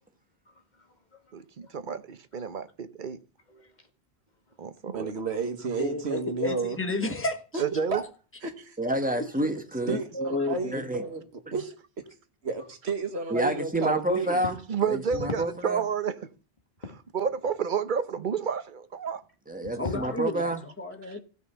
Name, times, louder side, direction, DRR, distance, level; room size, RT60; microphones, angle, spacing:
voice 1, 0.5-1.2 1.6-1.7 3.5-3.9 14.3-14.5 14.8-14.9 19.6-20.2, left 3 dB, 45° left, 2.1 m, -40 dB
voice 2, 1.3-3.2 4.6-5.1 7.6-8.0 14.7-16.3 17.1-19.2, right 6 dB, 50° right, 0.9 m, -30 dB
voice 3, 4.9-6.8 7.5-7.6 7.9-8.0 8.4-8.8 9.9-11.2 11.5-11.7 12.4-14.4, right 4 dB, 80° right, 1.7 m, -31 dB
voice 4, 5.8-7.4 9.9-10.8 19.7-21.2, left 2 dB, 10° left, 1.3 m, -31 dB
voice 5, 8.8-10.0 10.7-11.0 13.3-14.6 14.8-15.8 19.5-20.6, right 1 dB, 10° right, 1.4 m, -28 dB
15.5 x 5.4 x 6.8 m
omnidirectional pair, 1.1 m